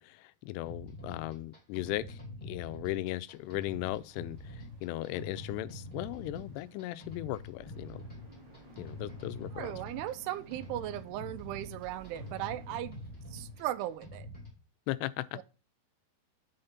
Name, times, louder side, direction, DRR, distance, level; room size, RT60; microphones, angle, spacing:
voice 1, 0.0-8.0 8.8-9.8 14.9-15.4, left 16 dB, 85° left, 2.6 m, -37 dB
sound 1, 0.6-14.6, left 1 dB, 25° left, 1.0 m, -46 dB
Boat Water vehicle, 3.3-14.0, right 1 dB, 60° right, 2.0 m, -59 dB
sound 2, 7.6-12.8, right 2 dB, 10° right, 1.4 m, -55 dB
voice 2, 9.5-13.0 13.3-14.3 15.4-15.5, right 14 dB, 80° right, 2.5 m, -37 dB
6.6 x 4.2 x 5.7 m
omnidirectional pair, 4.9 m